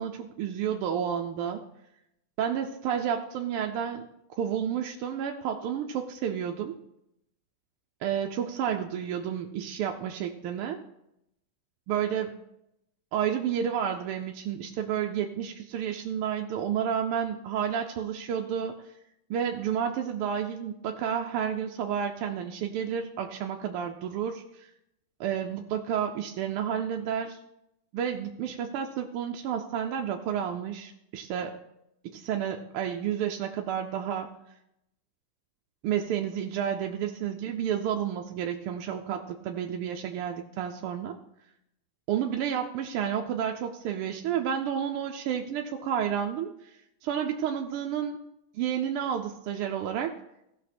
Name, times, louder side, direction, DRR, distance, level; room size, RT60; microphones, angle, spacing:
voice 1, 0.0-1.7 2.4-4.1 4.4-6.8 8.0-10.8 11.9-12.4 13.1-18.8 19.3-24.7 25.2-27.4 27.9-31.6 32.0-34.3 35.8-41.2 42.1-46.5 47.0-48.2 48.5-50.1, right 8 dB, 85° right, 3 dB, 1.6 m, -30 dB
15.5 x 6.2 x 4.2 m, 0.82 s
omnidirectional pair, 2.4 m